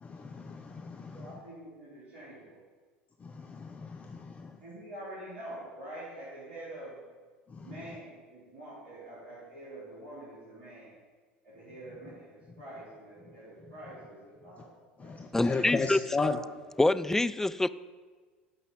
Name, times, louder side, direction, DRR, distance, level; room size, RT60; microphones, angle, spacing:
voice 1, 0.0-1.3 3.2-4.6 7.5-7.7 15.0-16.4, left 4 dB, 25° left, 0.7 m, -35 dB
voice 2, 1.1-2.6 4.6-7.0 7.6-10.9 11.4-14.7 15.0-15.2, right 1 dB, 70° right, 3.8 m, -46 dB
voice 3, 15.3-16.3 16.8-17.7, left 2 dB, 5° left, 0.4 m, -26 dB
12.5 x 5.5 x 7.3 m
figure-of-eight pair, 70°, 6 cm